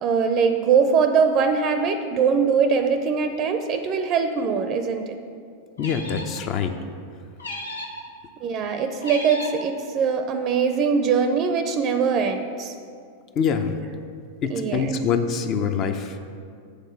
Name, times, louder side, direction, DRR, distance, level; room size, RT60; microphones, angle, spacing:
voice 1, 0.0-5.2 8.4-12.7 14.5-14.9, right 6 dB, 40° right, 7 dB, 0.5 m, -22 dB
sound 1, 5.8-6.4 7.4-8.1 9.0-9.7, left 1 dB, 85° left, 0.8 m, -34 dB
voice 2, 5.8-6.7 13.4-13.8 14.4-16.2, left 6 dB, 40° left, 7 dB, 0.6 m, -24 dB
8.1 x 3.9 x 6.9 m, 2.3 s
hypercardioid pair, 95°, 0 cm